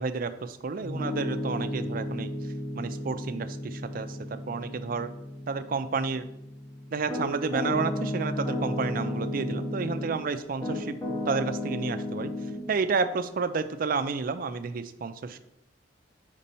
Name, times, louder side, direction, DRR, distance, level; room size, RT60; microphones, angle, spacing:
voice 1, 0.0-2.3 2.7-5.1 5.5-6.3 6.9-10.9 11.3-12.3 12.7-15.4, right 4 dB, 50° right, 10 dB, 0.4 m, -31 dB
Piano, 0.8-10.2 10.6-12.6, left 1 dB, 20° left, 1.2 m, -33 dB
5.2 x 4.2 x 5.3 m, 0.84 s
head